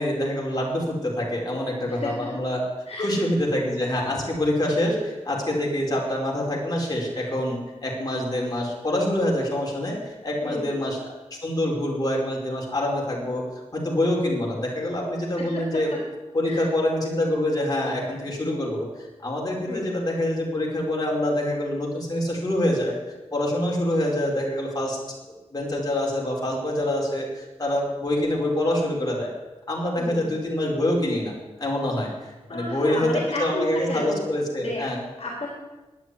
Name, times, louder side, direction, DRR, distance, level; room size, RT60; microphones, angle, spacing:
voice 1, 0.0-2.7 3.0-13.4 13.7-15.9 16.3-23.0 23.3-25.2 25.5-29.3 29.7-31.3 31.6-32.1 32.5-35.0, left 1 dB, 35° left, -2 dB, 4.7 m, -26 dB
voice 2, 10.4-10.7 15.4-15.6 16.4-16.6 19.7-20.0 30.0-30.3 32.5-34.3 34.6-34.8 35.2-35.5, left 2 dB, 60° left, -2 dB, 3.4 m, -31 dB
10.5 x 9.3 x 9.8 m, 1.2 s
wide cardioid pair, 100°, 11 cm